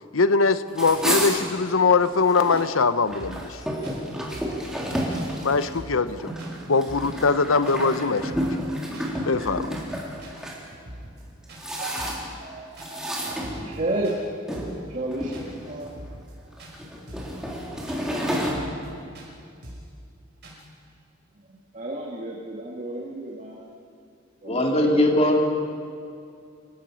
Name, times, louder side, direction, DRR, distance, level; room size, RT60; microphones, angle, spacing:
voice 1, 0.1-3.6 5.4-6.3 6.7-8.3 9.3-9.8, left 4 dB, 85° left, 13 dB, 0.8 m, -22 dB
sound 1, 0.7-2.6 3.0-10.6 11.2-12.4 12.8-14.0 14.5-14.7 15.1-15.9 16.5-18.5, equal, 5° right, 3.5 m, -30 dB
sound 2, 2.0-2.1 2.5-2.7 3.0-3.6 3.8-4.0 4.3-4.6 5.1-5.3 5.6-6.1 6.4-6.5 6.9-7.2 7.7-7.8 8.1-8.7 8.9-9.1 9.4-9.7 10.2-10.4 10.7-11.2 11.5-11.6 12.0-12.3 12.8-12.9 13.2-13.8 14.0-14.2 14.5-14.8 15.3-15.5 15.8-16.3 16.6-16.7 17.1-17.4 17.9-18.0 18.3-18.9 19.1-19.3 19.6-19.9 20.4-20.6, right 1 dB, 55° right, 5.4 m, -43 dB
voice 2, 11.8-16.0 21.4-23.7 24.4-25.1, right 1 dB, 40° right, -2 dB, 2.0 m, -33 dB
voice 3, 24.4-25.4, left 1 dB, 30° left, 1 dB, 2.8 m, -20 dB
27.5 x 16.0 x 6.4 m, 2.4 s
head